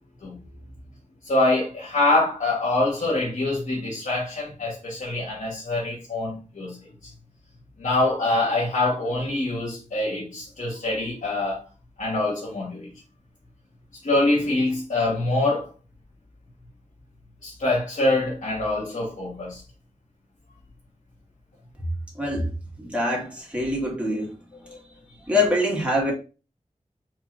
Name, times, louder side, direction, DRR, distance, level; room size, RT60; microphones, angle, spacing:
voice 1, 1.2-6.8 7.8-11.6 12.0-12.9 14.0-15.7 17.4-19.6 24.6-24.8, left 2 dB, 85° left, 1.4 m, -24 dB
voice 2, 22.2-22.5 22.8-24.3 25.3-26.1, left 1 dB, 10° right, 1.8 m, -24 dB
4.4 x 3.0 x 2.5 m
wide cardioid pair, 50°, 13 cm